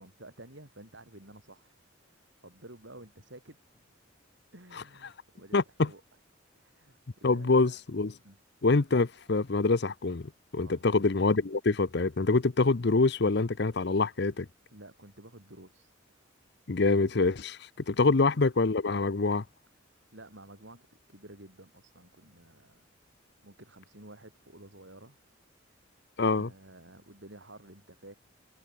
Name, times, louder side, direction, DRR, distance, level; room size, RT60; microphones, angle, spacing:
voice 1, 0.0-1.8 2.4-3.8 4.5-6.0 6.6-7.8 8.2-8.4 10.6-10.9 14.7-16.0 20.1-22.9 23.4-25.2 26.3-28.1, right 1 dB, 65° right, 6.4 m, -52 dB
voice 2, 5.5-5.9 7.2-8.1 8.6-14.5 16.7-19.4 26.2-26.5, left 3 dB, 55° left, 0.7 m, -25 dB
head